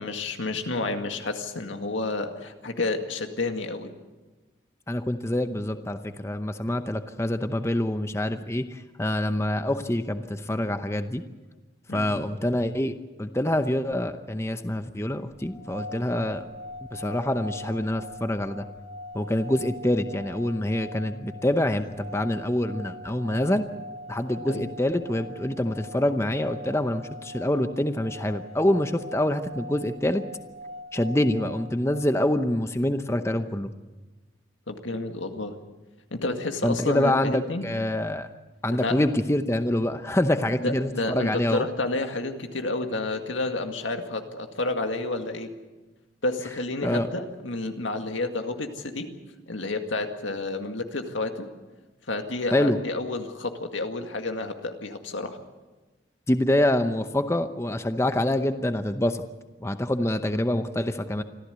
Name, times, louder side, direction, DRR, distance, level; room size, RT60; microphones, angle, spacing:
voice 1, 0.0-3.9 11.9-12.1 24.5-24.7 34.7-35.6 36.1-37.6 38.8-39.1 40.6-45.5 46.2-49.1 49.5-51.5 52.1-55.4, left 2 dB, 90° left, 5 dB, 2.1 m, -30 dB
voice 2, 4.9-11.2 11.9-12.9 13.2-16.4 16.9-18.6 19.1-23.7 24.1-30.2 30.9-33.7 36.6-38.3 38.6-41.6 46.8-47.1 52.5-52.8 56.3-59.2 59.6-61.2, left 1 dB, 15° left, 9 dB, 0.8 m, -26 dB
sound 1, 15.4-32.6, left 1 dB, 50° right, 2.4 m, -42 dB
25.0 x 15.0 x 8.2 m, 1.2 s
head